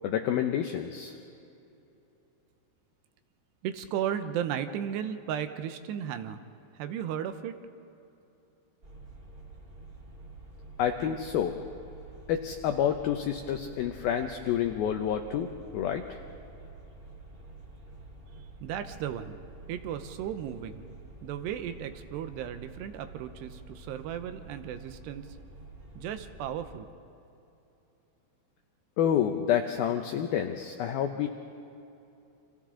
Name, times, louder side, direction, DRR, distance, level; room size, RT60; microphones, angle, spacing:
voice 1, 0.0-1.2 10.8-11.6 12.3-15.5 15.7-16.2 29.0-31.3, left 9 dB, 80° left, 5 dB, 2.1 m, -28 dB
voice 2, 3.6-6.4 6.7-7.6 18.6-19.4 19.7-20.9 21.2-25.4 26.0-26.9, right 9 dB, 75° right, 9 dB, 2.7 m, -35 dB
sound 1, 8.8-26.8, right 2 dB, 20° right, 3.2 m, -48 dB
30.0 x 26.5 x 3.8 m, 2.9 s
omnidirectional pair, 5.3 m